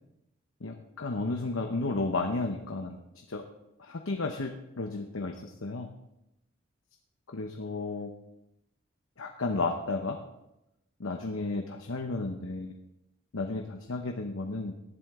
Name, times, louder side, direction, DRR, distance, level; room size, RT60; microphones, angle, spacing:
voice 1, 0.6-3.0 3.3-3.4 3.8-5.9 7.3-8.1 9.2-10.2 11.0-12.7 13.3-14.7, left 3 dB, 80° left, 4 dB, 0.9 m, -33 dB
18.5 x 11.0 x 3.7 m, 0.90 s
head